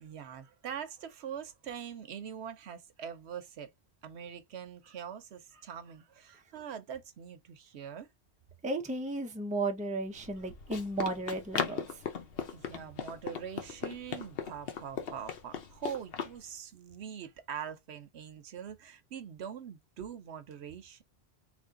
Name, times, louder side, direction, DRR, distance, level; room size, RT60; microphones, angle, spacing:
voice 1, 0.0-3.7 4.0-8.1 12.5-21.0, right 8 dB, 80° right, 1.0 m, -43 dB
voice 2, 8.6-11.8, right 2 dB, 10° right, 0.5 m, -34 dB
Run, 10.2-16.4, left 7 dB, 65° left, 1.0 m, -38 dB
3.3 x 2.6 x 3.7 m
omnidirectional pair, 1.1 m